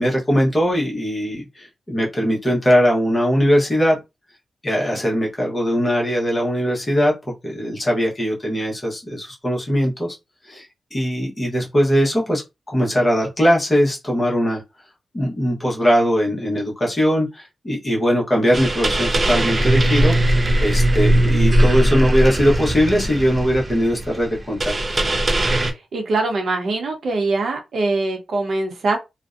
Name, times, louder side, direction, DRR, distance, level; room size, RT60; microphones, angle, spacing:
voice 1, 0.0-4.0 4.6-7.1 7.4-10.2 10.5-10.7 10.9-12.4 12.7-14.6 15.1-25.0, equal, 20° left, 0.8 m, -20 dB
sound 1, 18.5-25.7, right 1 dB, 30° right, 0.3 m, -19 dB
voice 2, 25.9-29.0, right 3 dB, 60° right, 0.7 m, -22 dB
2.5 x 2.0 x 2.4 m
wide cardioid pair, 150°, 0 cm